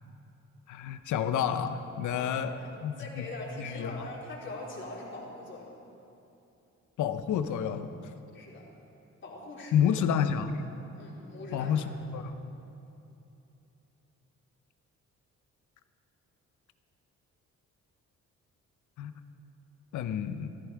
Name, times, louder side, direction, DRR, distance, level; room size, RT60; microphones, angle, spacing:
voice 1, 0.7-2.5 2.8-3.2 3.6-4.1 7.0-7.9 9.7-10.6 11.5-12.3 19.0-19.1 19.9-20.5, left 8 dB, 75° left, 9 dB, 0.9 m, -29 dB
voice 2, 2.1-5.8 8.3-8.7 9.2-9.9 10.9-11.7, left 2 dB, 40° left, -5 dB, 3.9 m, -42 dB
14.5 x 14.0 x 4.7 m, 2.8 s
cardioid pair, 90°, 30 cm